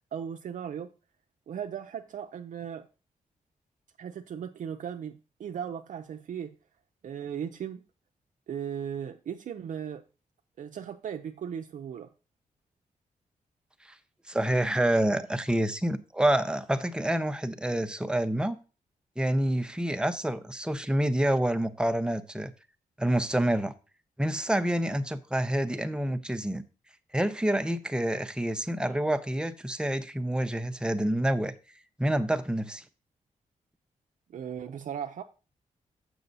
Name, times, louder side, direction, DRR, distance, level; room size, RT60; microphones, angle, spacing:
voice 1, 0.1-0.9 1.5-2.9 4.0-6.6 7.0-7.8 8.5-10.0 10.6-12.1 34.3-35.2, right 8 dB, 65° right, 0.5 m, -37 dB
voice 2, 14.3-18.6 19.2-22.5 23.0-23.7 24.2-26.6 27.1-31.5 32.0-32.8, right 1 dB, 5° right, 0.6 m, -27 dB
6.8 x 6.1 x 4.0 m
cardioid pair, 85°, 14 cm